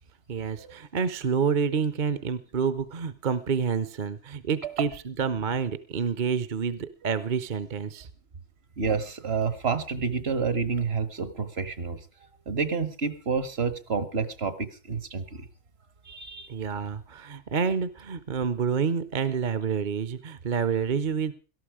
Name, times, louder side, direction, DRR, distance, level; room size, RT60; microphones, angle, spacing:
voice 1, 0.3-8.1 16.5-21.3, right 6 dB, 50° right, 14 dB, 0.9 m, -28 dB
voice 2, 8.8-12.0 12.5-15.5 16.1-16.5, right 5 dB, 65° right, 13 dB, 1.5 m, -29 dB
17.5 x 13.5 x 4.9 m, 0.38 s
omnidirectional pair, 1.2 m